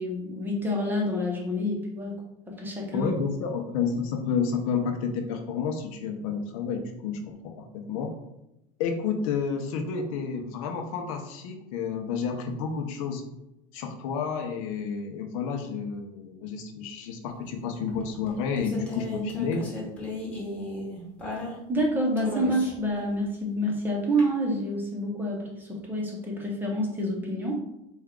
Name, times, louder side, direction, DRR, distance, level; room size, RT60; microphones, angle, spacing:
voice 1, 0.0-2.2 2.5-3.1 21.7-27.6, equal, 10° right, -1 dB, 0.7 m, -28 dB
voice 2, 2.9-8.1 8.8-13.2 13.7-19.6, left 5 dB, 75° left, 4 dB, 0.7 m, -30 dB
sound 1, 17.9-21.8 22.2-22.9 24.2-24.3, left 2 dB, 5° left, 1.0 m, -35 dB
4.4 x 2.3 x 3.6 m, 0.87 s
cardioid pair, 160°, 18 cm